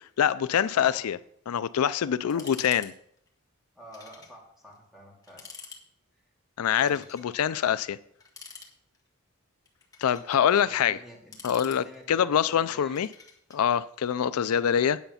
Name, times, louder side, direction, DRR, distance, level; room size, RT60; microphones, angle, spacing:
voice 1, 0.2-1.2 1.5-2.9 6.6-8.0 10.0-11.0 11.4-13.1 13.5-15.0, left 8 dB, 80° left, 0.4 m, -25 dB
sound 1, 2.3-2.9 3.2-3.3 3.9-4.3 4.7-4.8 5.2-5.8 6.8-7.3 8.2-9.1 9.7-10.4 11.1-12.2 12.9-13.6, left 4 dB, 15° left, 1.5 m, -47 dB
voice 2, 3.7-5.6 6.2-6.3 6.8-7.1 7.3-7.4 10.6-11.4 11.7-13.0, left 1 dB, ahead, 2.7 m, -48 dB
9.2 x 7.8 x 5.7 m
head